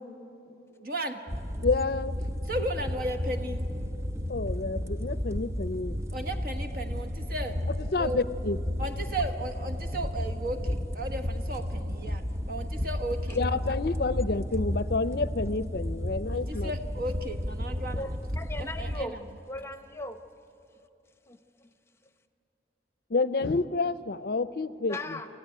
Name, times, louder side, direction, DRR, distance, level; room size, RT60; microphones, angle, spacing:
voice 1, 0.8-1.2 2.5-3.6 6.1-7.6 8.0-8.2 8.8-13.7 16.3-18.1 18.6-19.3, right 1 dB, 50° right, 6 dB, 1.4 m, -35 dB
sound 1, 1.3-19.0, equal, 15° right, 0.5 m, -33 dB
voice 2, 1.6-2.3 4.3-6.0 7.8-8.6 13.4-16.7 23.1-25.2, left 3 dB, 55° left, 15 dB, 0.5 m, -29 dB
voice 3, 18.0-19.1 19.5-20.2 21.3-21.7 24.9-25.3, left 2 dB, 15° left, 8 dB, 0.9 m, -38 dB
28.5 x 15.0 x 9.3 m, 2.8 s
head